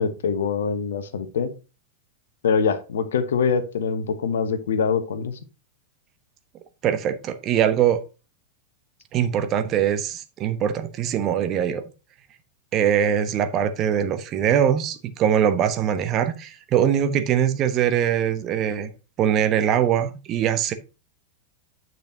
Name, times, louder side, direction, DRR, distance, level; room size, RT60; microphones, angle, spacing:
voice 1, 0.0-1.5 2.4-5.4, left 6 dB, 60° left, 1.1 m, -24 dB
voice 2, 6.8-8.0 9.1-11.8 12.7-18.9 19.2-20.7, right 9 dB, 35° right, 1.1 m, -22 dB
10.0 x 6.2 x 2.8 m
figure-of-eight pair, 90°, 0 cm